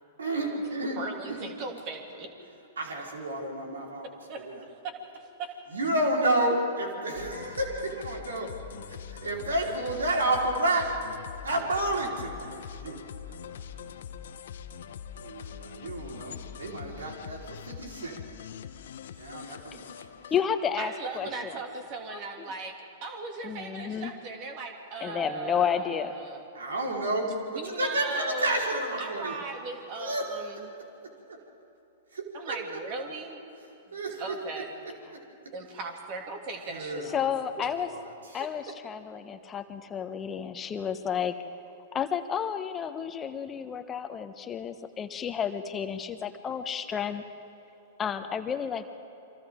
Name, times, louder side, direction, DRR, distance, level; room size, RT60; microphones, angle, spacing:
voice 1, 0.2-1.0 1.3-1.4 2.8-4.1 4.4-4.6 5.7-8.5 8.9-10.9 11.4-12.4 12.8-13.6 15.1-18.2 19.2-20.1 21.2-21.3 26.5-29.4 29.9-30.3 31.3-31.4 32.1-32.8 33.9-35.2 36.7-37.3 37.6-38.4, right 1 dB, 75° right, -1 dB, 4.4 m, -31 dB
voice 2, 1.0-2.3 4.3-4.4 5.1-5.5 20.8-22.7 23.0-26.4 27.5-28.6 29.0-30.7 32.3-33.4 33.9-34.8 35.5-37.2 37.6-37.7, right 3 dB, 45° right, 3 dB, 2.7 m, -38 dB
sound 1, 7.2-21.1, left 8 dB, 65° left, 0.9 m, -43 dB
voice 3, 20.3-21.6 22.1-22.5 23.4-24.1 25.0-26.4 37.1-37.9 38.3-41.4 41.9-47.2 48.0-48.9, left 8 dB, 25° left, 9 dB, 1.2 m, -31 dB
29.0 x 24.5 x 3.8 m, 3.0 s
figure-of-eight pair, 105°, 0 cm